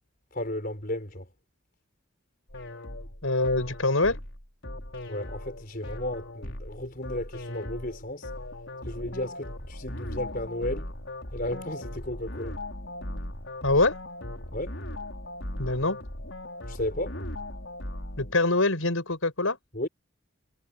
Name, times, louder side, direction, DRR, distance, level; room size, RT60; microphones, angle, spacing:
voice 1, 0.3-1.3 5.1-8.3 8.8-10.9 11.3-12.6 14.5-14.8 16.7-17.2 19.7-19.9, left 1 dB, 45° left, 4.9 m, -34 dB
sound 1, 2.5-18.3, left 1 dB, 65° left, 5.5 m, -38 dB
voice 2, 3.2-4.2 13.6-14.0 15.6-16.0 18.2-19.6, left 2 dB, 85° left, 5.7 m, -24 dB
head